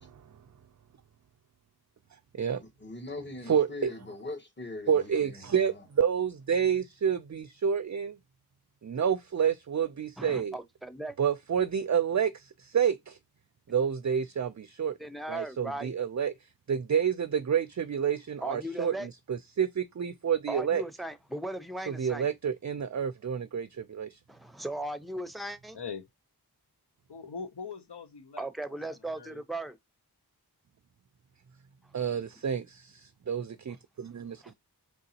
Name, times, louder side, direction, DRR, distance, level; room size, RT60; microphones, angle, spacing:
voice 1, 2.6-5.8, left 2 dB, 25° left, 1.4 m, -41 dB
voice 2, 3.5-3.9 4.9-8.2 8.8-10.6 11.2-13.2 13.7-15.0 15.3-16.3 16.7-20.8 21.9-24.2 31.9-34.5, right 7 dB, 45° right, 0.4 m, -29 dB
voice 3, 10.2-11.2 15.0-15.9 18.4-19.1 20.5-22.3 24.3-25.8 28.4-29.8 34.4-34.5, right 1 dB, ahead, 0.7 m, -37 dB
voice 4, 25.7-26.1 27.1-28.8 29.1-29.4, left 5 dB, 90° left, 0.7 m, -42 dB
4.9 x 3.8 x 2.7 m
wide cardioid pair, 50°, 39 cm